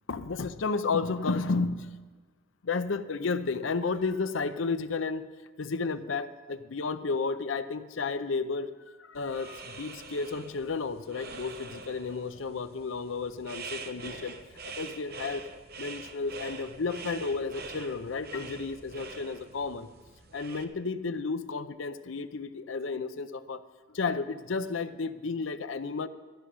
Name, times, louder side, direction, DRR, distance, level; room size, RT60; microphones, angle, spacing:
voice 1, 0.1-2.1 2.6-5.3 5.6-14.4 14.6-15.4 15.8-19.9 20.3-23.6 23.9-26.1, left 4 dB, 75° left, 12 dB, 0.6 m, -32 dB
sound 1, 9.1-20.6, right 4 dB, 55° right, 1.0 m, -45 dB
14.0 x 6.1 x 9.9 m, 1.4 s
head